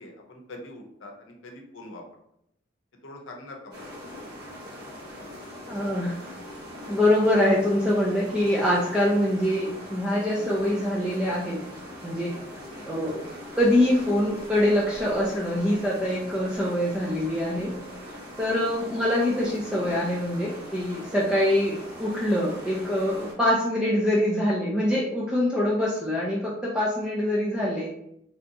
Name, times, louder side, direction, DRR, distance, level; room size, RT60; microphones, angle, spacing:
voice 1, 0.0-2.0 3.0-3.9 12.7-13.0 19.8-20.0, left 1 dB, 85° left, 2 dB, 0.7 m, -43 dB
sound 1, 3.7-23.3, equal, 55° right, 1.0 m, -41 dB
voice 2, 5.7-6.2 6.9-11.6 12.0-12.3 12.9-13.2 13.6-17.7 18.4-27.9, left 1 dB, 5° right, -6 dB, 0.4 m, -24 dB
3.3 x 2.8 x 2.6 m, 0.75 s
head